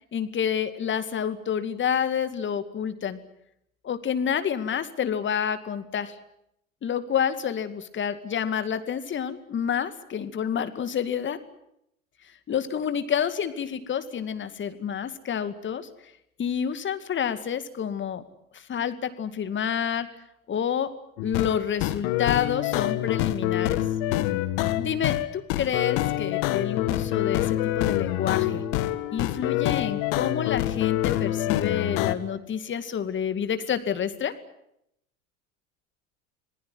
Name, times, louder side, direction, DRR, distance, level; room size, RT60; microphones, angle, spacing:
voice 1, 0.1-3.2 3.8-6.2 6.8-11.4 12.5-15.9 16.4-18.2 18.5-20.1 20.5-20.9 21.2-23.8 24.7-28.6 29.1-34.3, left 8 dB, 25° left, 11 dB, 2.2 m, -28 dB
Nixuss Game - wait at the baja lake with the otter, 21.2-32.1, left 14 dB, 50° left, 1.9 m, -26 dB
26.5 x 20.5 x 9.5 m, 0.79 s
figure-of-eight pair, 75°, 42 cm